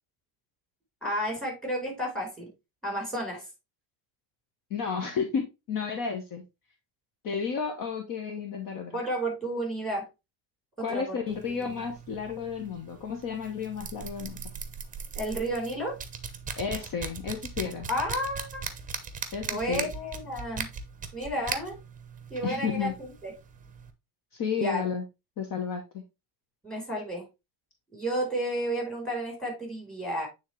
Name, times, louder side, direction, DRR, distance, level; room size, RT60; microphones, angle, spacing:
voice 1, 1.0-2.5 2.8-3.4 8.9-10.1 10.8-11.2 11.6-11.7 15.1-16.0 17.9-18.6 19.5-20.7 21.1-21.8 22.3-23.3 24.6-24.8 26.6-27.2 27.9-30.3, right 1 dB, ahead, 1 dB, 4.2 m, -32 dB
voice 2, 4.7-6.4 7.2-9.0 10.8-14.4 16.6-17.9 19.3-19.9 22.4-22.9 24.3-25.0 25.4-26.0, left 6 dB, 40° left, 4 dB, 1.1 m, -32 dB
sound 1, 11.3-23.9, right 5 dB, 15° right, 0.9 m, -39 dB
8.8 x 3.7 x 3.1 m, 0.24 s
supercardioid pair, 115°, 49 cm